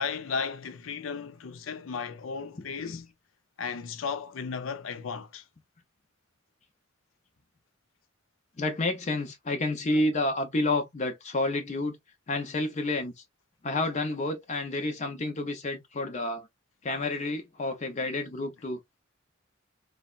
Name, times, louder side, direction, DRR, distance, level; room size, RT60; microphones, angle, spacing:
voice 1, 0.0-3.1 3.6-5.4, left 5 dB, 85° left, 0.5 m, -35 dB
voice 2, 2.6-3.0 8.6-12.0 12.3-13.1 13.6-16.5 16.8-18.8, left 2 dB, 35° left, 0.6 m, -30 dB
4.0 x 2.1 x 2.3 m
head